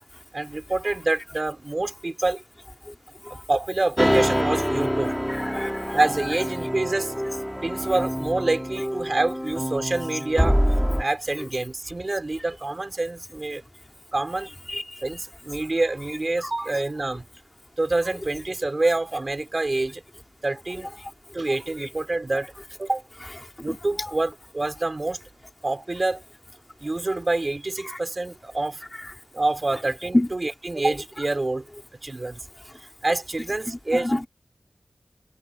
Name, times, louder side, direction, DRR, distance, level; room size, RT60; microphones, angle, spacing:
voice 1, 0.3-2.4 3.3-5.1 5.9-7.1 7.6-10.6 11.0-13.6 14.1-14.5 15.0-17.2 17.8-20.0 20.4-20.9 21.3-22.5 22.8-23.0 23.6-25.2 25.6-26.2 26.8-28.8 29.3-31.7 32.0-32.4 33.0-34.1, right 2 dB, 45° right, 5.0 m, -26 dB
sound 1, 4.0-11.0, equal, ahead, 3.3 m, -25 dB
voice 2, 5.0-6.0 14.7-14.8 16.4-16.5 23.7-24.1 30.1-30.3 34.0-34.3, left 1 dB, 25° left, 3.3 m, -26 dB
wide cardioid pair, 65°, 0 cm